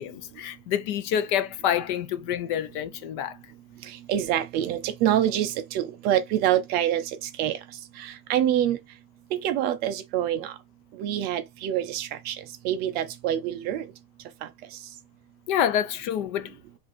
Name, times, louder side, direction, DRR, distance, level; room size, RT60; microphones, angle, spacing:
voice 1, 0.0-3.4 15.5-16.5, left 10 dB, 50° left, 0.6 m, -27 dB
voice 2, 4.1-7.0 7.4-7.6 8.0-8.8 9.3-10.5 11.0-12.4 12.6-13.8, right 11 dB, 30° right, 0.4 m, -25 dB
4.9 x 2.6 x 4.2 m
supercardioid pair, 170°, 31 cm